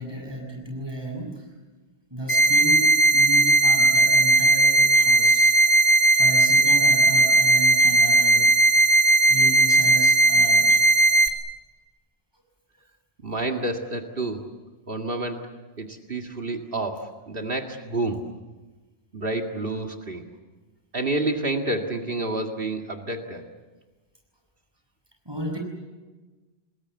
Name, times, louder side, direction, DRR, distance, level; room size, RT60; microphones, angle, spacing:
voice 1, 0.0-1.4 2.1-5.5 6.1-8.5 9.3-10.8 25.3-25.6, right 1 dB, 25° right, 1 dB, 7.6 m, -33 dB
sound 1, 2.3-11.3, right 2 dB, 80° left, 3.2 m, -17 dB
voice 2, 13.2-14.4 14.9-15.5 15.8-18.2 19.1-20.2 20.9-23.4, right 2 dB, 60° right, 3 dB, 2.3 m, -29 dB
28.5 x 21.0 x 8.3 m, 1.2 s
omnidirectional pair, 1.1 m